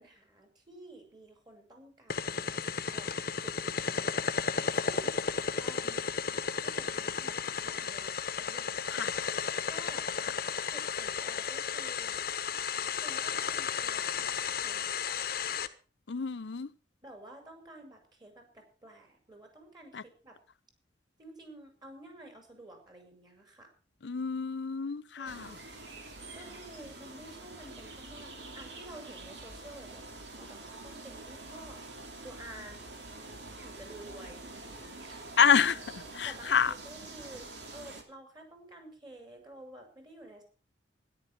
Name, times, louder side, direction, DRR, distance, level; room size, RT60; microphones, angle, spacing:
voice 1, 0.0-4.2 4.6-5.3 5.6-9.1 9.7-10.1 10.7-12.3 13.0-14.3 14.6-15.0 17.0-20.4 21.2-23.7 25.1-25.7 26.3-31.9 32.2-32.8 33.6-34.5 34.8-35.2 36.3-40.4, right 1 dB, 25° right, 5.5 m, -51 dB
sound 1, 2.1-15.7, left 6 dB, 60° left, 1.1 m, -33 dB
voice 2, 16.1-16.7 19.9-20.0 24.0-25.6 35.4-35.8 36.1-36.7, left 7 dB, 75° left, 0.6 m, -27 dB
sound 2, 25.2-38.0, right 2 dB, 75° right, 2.9 m, -46 dB
13.5 x 11.0 x 5.8 m
head